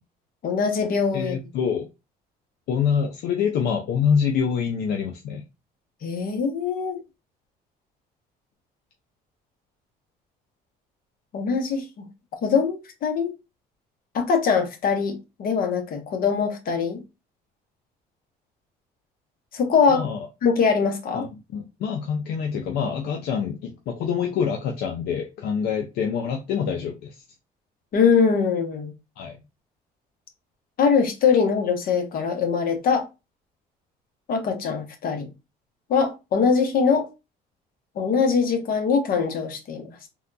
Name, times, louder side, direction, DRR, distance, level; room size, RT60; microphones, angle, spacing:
voice 1, 0.4-1.4 6.0-7.0 11.3-11.8 12.4-13.3 14.1-17.0 19.5-20.0 20.4-21.2 27.9-28.9 30.8-33.1 34.3-35.3 35.9-37.1 38.0-40.1, left 5 dB, 60° left, 0.9 m, -22 dB
voice 2, 1.1-1.9 2.7-5.4 19.9-20.3 21.1-27.2 29.2-29.4, left 7 dB, 75° left, 0.5 m, -26 dB
3.5 x 2.3 x 2.5 m
cardioid pair, 110°, 17 cm